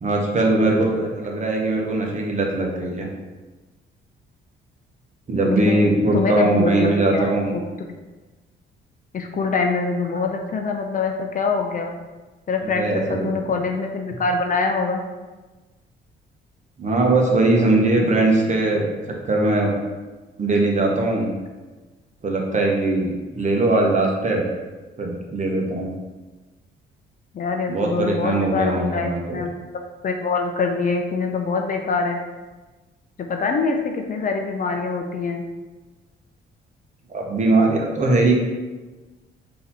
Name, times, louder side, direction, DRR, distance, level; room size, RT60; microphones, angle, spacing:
voice 1, 0.0-3.1 5.3-7.5 12.6-13.3 16.8-18.9 19.2-19.7 20.4-21.3 22.2-24.5 25.0-25.9 27.7-29.4 37.1-38.3, right 2 dB, 35° right, 0 dB, 0.9 m, -20 dB
voice 2, 5.4-5.9 6.1-7.3 9.1-11.9 12.5-15.0 27.3-29.6 30.0-32.2 33.2-35.4, left 4 dB, 45° left, 3 dB, 0.5 m, -24 dB
3.9 x 2.8 x 4.1 m, 1.2 s
cardioid pair, 90°, 20 cm